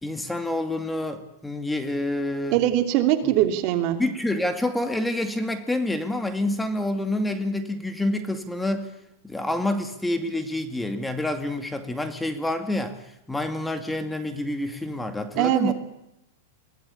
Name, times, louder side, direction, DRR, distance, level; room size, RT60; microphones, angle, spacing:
voice 1, 0.0-2.6 3.2-3.4 4.0-8.9 9.2-15.7, left 1 dB, 5° left, 7 dB, 2.3 m, -28 dB
voice 2, 2.5-4.0 15.4-15.7, right 13 dB, 50° right, 7 dB, 2.9 m, -21 dB
22.5 x 18.0 x 8.5 m, 0.83 s
hypercardioid pair, 130°, 0 cm